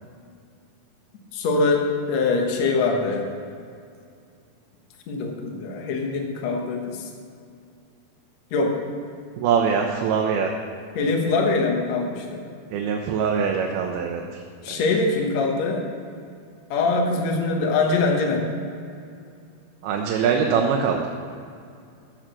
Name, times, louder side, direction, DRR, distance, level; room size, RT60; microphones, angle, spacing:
voice 1, 1.3-3.3 5.1-7.1 8.5-8.8 11.0-12.4 14.6-15.8 16.7-18.5, left 3 dB, 60° left, 1 dB, 2.0 m, -23 dB
voice 2, 9.4-10.6 12.7-14.4 14.7-14.9 19.8-21.1, right 6 dB, 85° right, 1 dB, 2.7 m, -23 dB
14.5 x 4.9 x 6.2 m, 2.4 s
omnidirectional pair, 4.4 m